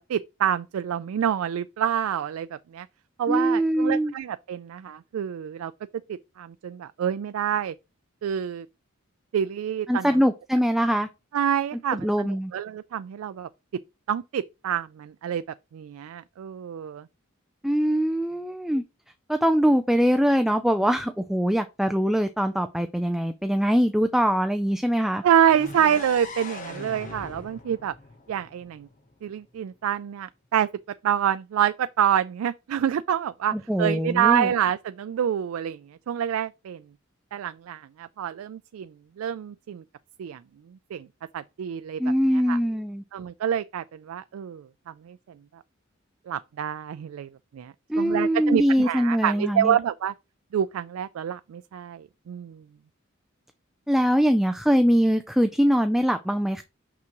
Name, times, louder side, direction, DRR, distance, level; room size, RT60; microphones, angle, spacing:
voice 1, 0.0-2.9 3.2-5.7 6.1-7.7 8.2-8.7 9.3-10.1 11.3-13.5 14.1-15.4 15.7-17.1 25.2-27.9 28.3-28.9 29.2-30.7 31.0-36.8 37.3-39.8 40.2-40.4 40.7-41.1 41.3-42.0 42.5-42.6 43.1-45.2 45.5-45.6 46.3-50.1 50.5-52.6, right 9 dB, 90° right, 0.3 m, -27 dB
voice 2, 3.3-4.1 9.9-11.1 11.9-12.5 17.6-18.8 19.3-25.2 33.5-34.5 42.0-43.0 47.9-49.8 53.9-56.6, equal, ahead, 0.3 m, -22 dB
sound 1, 25.5-29.3, left 3 dB, 40° left, 1.0 m, -41 dB
6.0 x 5.7 x 3.0 m
head